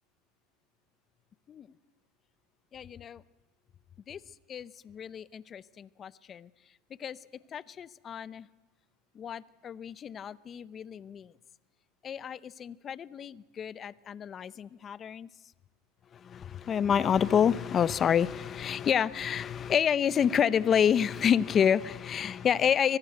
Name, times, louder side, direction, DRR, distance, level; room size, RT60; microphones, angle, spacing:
voice 1, 2.7-3.2 4.1-4.2 4.5-6.5 7.0-7.2 7.5-8.5 9.1-11.3 12.0-15.3 16.1-23.0, left 8 dB, 30° left, 18 dB, 0.7 m, -29 dB
25.0 x 19.0 x 8.0 m, 1.1 s
supercardioid pair, 125°, 0 cm